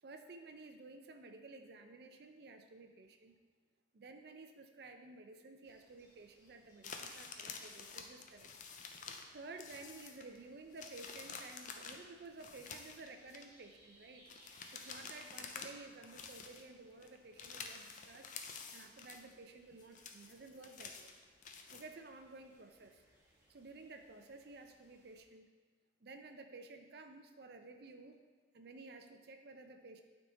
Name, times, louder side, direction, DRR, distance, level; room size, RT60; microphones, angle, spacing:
voice 1, 0.0-3.4 3.9-8.5 9.3-14.3 14.7-18.3 18.7-21.1 21.7-23.0 23.5-25.5 26.0-28.2 28.5-30.0, right 3 dB, 55° right, 5 dB, 0.5 m, -53 dB
sound 1, 5.6-25.2, right 1 dB, 15° right, 1.2 m, -69 dB
sound 2, 6.8-9.3 9.6-10.4 10.7-13.5 14.3-15.8 16.0-16.7 17.0-19.3 19.7-21.9, left 5 dB, 40° left, 0.5 m, -49 dB
8.9 x 3.6 x 3.9 m, 1.4 s
head